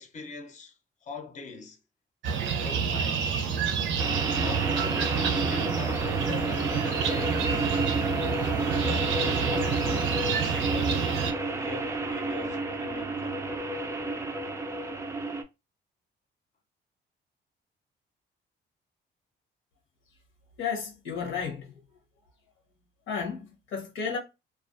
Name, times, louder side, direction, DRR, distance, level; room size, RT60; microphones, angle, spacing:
voice 1, 0.0-1.8 2.2-3.4 4.4-9.8 10.5-13.5, left 5 dB, 35° left, 0.6 m, -43 dB
sound 1, 2.2-11.3, right 6 dB, 70° right, 0.6 m, -28 dB
sound 2, 4.0-15.4, right 2 dB, 15° right, 0.3 m, -31 dB
voice 2, 20.6-21.8 23.1-24.2, left 6 dB, 90° left, 0.8 m, -33 dB
2.4 x 2.2 x 2.4 m
cardioid pair, 90°, 20 cm